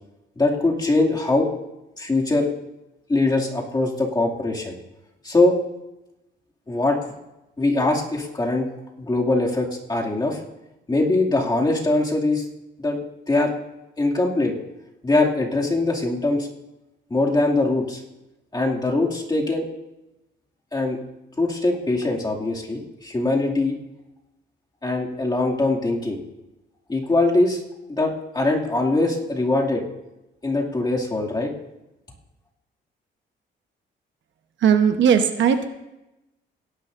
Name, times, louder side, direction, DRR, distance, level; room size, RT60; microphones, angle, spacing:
voice 1, 0.4-1.5 2.0-2.5 3.1-4.7 5.2-5.6 6.7-7.0 7.6-8.7 9.0-10.4 10.9-12.5 12.8-13.0 13.3-13.5 14.0-14.5 15.0-16.5 17.1-18.0 18.5-19.7 20.7-21.0 21.4-23.8 24.8-26.2 26.9-27.6 27.9-29.8 30.4-31.5, left 2 dB, 20° left, -2 dB, 2.4 m, -22 dB
voice 2, 34.6-35.7, right 7 dB, 70° right, 7 dB, 1.1 m, -18 dB
18.0 x 11.0 x 2.6 m, 0.95 s
cardioid pair, 90°, 20 cm